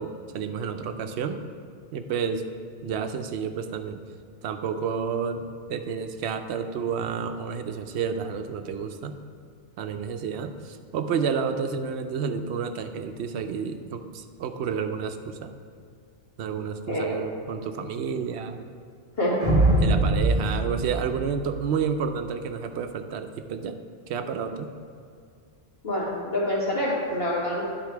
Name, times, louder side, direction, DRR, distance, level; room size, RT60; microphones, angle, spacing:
voice 1, 0.0-1.4 1.9-2.4 2.8-4.0 4.4-9.2 9.8-15.5 16.4-18.6 19.8-23.8 24.1-24.7, right 6 dB, 85° right, 7 dB, 0.8 m, -30 dB
voice 2, 16.9-17.2 19.2-19.4 25.8-27.6, left 1 dB, 65° left, -6 dB, 2.1 m, -26 dB
sound 1, 19.4-21.9, right 2 dB, 40° right, 1.0 m, -23 dB
11.0 x 3.9 x 4.6 m, 2.3 s
omnidirectional pair, 1.1 m